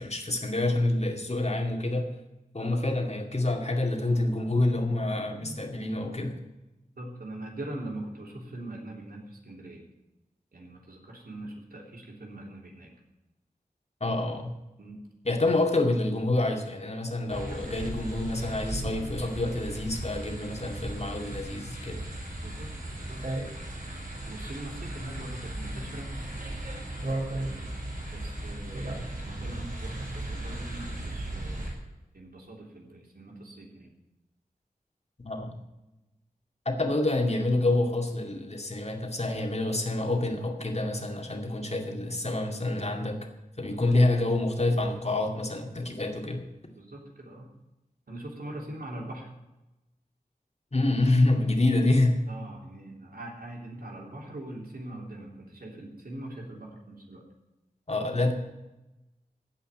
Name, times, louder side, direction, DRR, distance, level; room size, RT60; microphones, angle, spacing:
voice 1, 0.0-2.1 2.5-6.4 14.0-14.5 15.2-22.0 35.2-35.6 36.7-43.2 43.6-46.4 50.7-52.2 57.9-58.3, left 2 dB, 45° left, 3 dB, 2.3 m, -27 dB
voice 2, 7.0-9.8 10.5-12.9 14.8-15.0 22.4-23.2 24.3-26.1 27.3-27.8 28.1-31.8 32.1-33.9 43.7-43.9 46.7-47.5 48.1-49.3 52.3-57.2, right 1 dB, 90° right, -1 dB, 3.3 m, -42 dB
sound 1, 17.3-31.7, right 1 dB, 65° right, 5.3 m, -36 dB
15.5 x 5.7 x 9.6 m, 0.99 s
wide cardioid pair, 60°, 15 cm